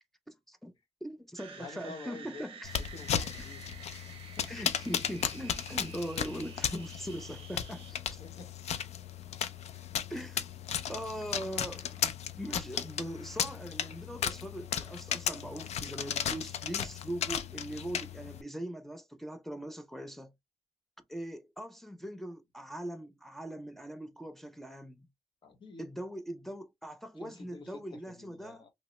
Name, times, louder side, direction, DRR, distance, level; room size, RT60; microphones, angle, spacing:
voice 1, 0.3-0.7 1.0-2.7 4.5-8.2 10.1-20.3 21.1-25.1 25.8-28.6, equal, ahead, 0.3 m, -41 dB
sound 1, 1.4-7.9, right 6 dB, 55° right, 0.6 m, -50 dB
voice 2, 1.6-2.5 2.8-3.6 4.4-4.6 8.2-8.5 25.4-25.9 27.2-28.7, left 4 dB, 45° left, 0.8 m, -48 dB
sound 2, 2.6-18.4, left 8 dB, 85° left, 0.4 m, -35 dB
3.0 x 2.1 x 2.8 m
wide cardioid pair, 170°, 11 cm